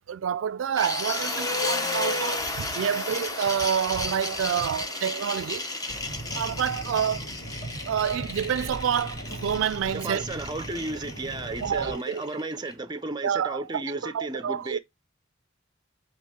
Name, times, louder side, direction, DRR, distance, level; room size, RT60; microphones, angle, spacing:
voice 1, 0.1-5.7 6.3-7.3 7.9-10.2 11.6-12.2 13.2-14.8, right 8 dB, 80° right, 0.3 m, -28 dB
sound 1, 0.8-12.7, left 2 dB, 15° left, 0.8 m, -33 dB
sound 2, 5.9-11.9, right 1 dB, 35° left, 3.0 m, -39 dB
voice 2, 9.9-14.8, right 2 dB, 20° right, 0.5 m, -34 dB
8.6 x 3.0 x 4.2 m
head